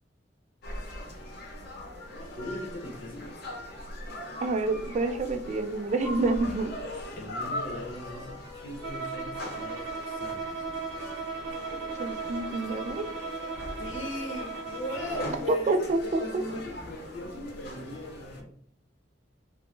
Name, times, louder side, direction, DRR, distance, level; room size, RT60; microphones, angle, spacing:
sound 1, 0.6-18.4, left 1 dB, 55° left, 0.7 m, -40 dB
voice 1, 2.4-3.6 7.1-10.7 13.8-18.5, left 1 dB, 90° left, 2 dB, 0.8 m, -39 dB
voice 2, 4.4-6.7 12.0-13.1 15.5-16.4, right 3 dB, 40° right, 7 dB, 0.3 m, -28 dB
Bowed string instrument, 8.8-15.5, right 4 dB, 85° right, 0.6 m, -37 dB
2.9 x 2.1 x 3.1 m, 0.65 s
head